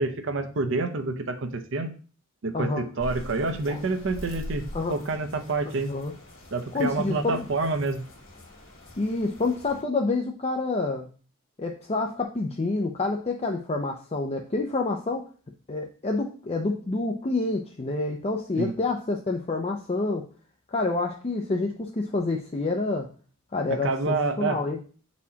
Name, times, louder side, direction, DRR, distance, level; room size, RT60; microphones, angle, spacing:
voice 1, 0.0-1.9 2.4-4.6 4.9-5.9 6.5-8.0 18.6-18.7 23.8-24.6, right 3 dB, 65° right, 8 dB, 0.6 m, -28 dB
voice 2, 2.5-2.8 3.7-3.8 4.7-4.9 5.8-6.1 6.7-7.4 9.0-11.1 11.6-15.3 15.7-20.3 20.7-23.1 23.5-24.8, left 3 dB, 30° left, 2 dB, 0.5 m, -28 dB
sound 1, 3.0-9.8, equal, 65° left, 2.0 m, -43 dB
8.4 x 4.2 x 2.8 m, 0.39 s
head